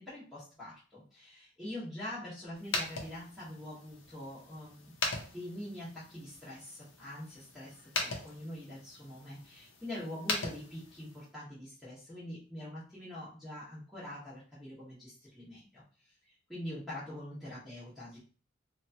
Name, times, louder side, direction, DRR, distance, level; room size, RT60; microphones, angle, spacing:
voice 1, 0.0-4.9 5.3-15.8 16.2-18.2, left 1 dB, ahead, -12 dB, 0.9 m, -44 dB
sound 1, 2.6-11.3, left 3 dB, 70° left, 0.7 m, -40 dB
2.9 x 2.2 x 2.6 m, 0.38 s
head